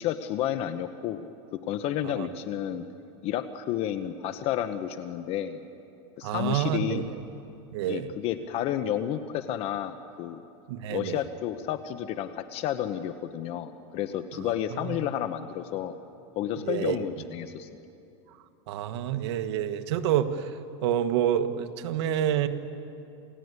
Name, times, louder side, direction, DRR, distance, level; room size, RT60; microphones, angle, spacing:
voice 1, 0.0-2.9 3.2-5.6 6.2-7.1 7.9-10.4 10.9-15.9 16.3-17.7, left 11 dB, 45° left, 10 dB, 1.0 m, -31 dB
voice 2, 6.2-7.0 7.7-8.1 10.7-11.2 14.9-15.0 16.6-17.0 18.7-20.5 20.8-22.5, right 10 dB, 70° right, 9 dB, 1.5 m, -28 dB
28.5 x 17.0 x 9.6 m, 2.7 s
supercardioid pair, 145°, 15 cm